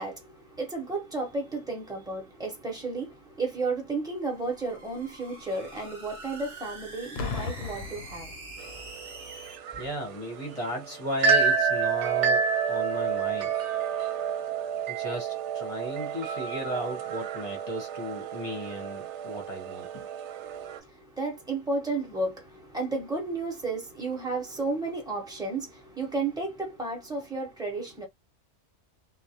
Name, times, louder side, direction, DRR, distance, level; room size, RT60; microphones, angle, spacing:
voice 1, 0.0-8.9 20.4-28.0, right 3 dB, 5° right, 1.0 m, -33 dB
sound 1, 4.1-9.6, right 2 dB, 45° right, 1.0 m, -45 dB
Boom, 7.2-8.9 9.8-10.0, left 4 dB, 65° left, 0.8 m, -36 dB
sound 2, 8.6-20.8, right 6 dB, 85° right, 0.9 m, -29 dB
voice 2, 9.8-13.5 14.9-20.1, equal, 35° left, 0.8 m, -35 dB
2.3 x 2.1 x 2.8 m
omnidirectional pair, 1.2 m